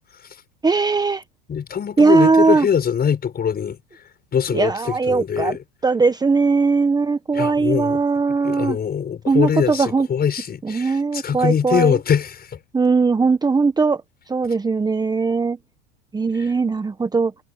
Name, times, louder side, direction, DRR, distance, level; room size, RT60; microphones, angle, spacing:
voice 1, 0.6-1.2 2.0-2.7 4.5-5.6 5.8-8.8 9.3-10.1 10.6-12.0 12.7-14.0 14.3-15.6 16.1-17.3, right 4 dB, 10° right, 1.1 m, -19 dB
voice 2, 1.5-3.8 4.3-5.6 7.3-8.0 8.4-12.6 16.4-16.5, left 8 dB, 30° left, 6.6 m, -22 dB
hypercardioid pair, 105°, 32 cm